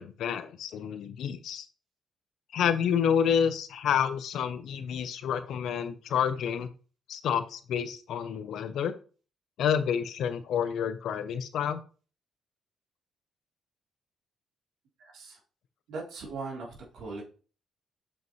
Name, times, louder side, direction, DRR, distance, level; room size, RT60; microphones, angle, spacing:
voice 1, 0.0-1.6 2.5-6.7 7.1-8.9 9.6-11.8, left 8 dB, 75° left, 12 dB, 0.7 m, -29 dB
voice 2, 15.0-15.4 15.9-17.2, right 3 dB, 75° right, -3 dB, 3.3 m, -39 dB
6.8 x 5.3 x 3.1 m, 0.38 s
cardioid pair, 90°, 0 cm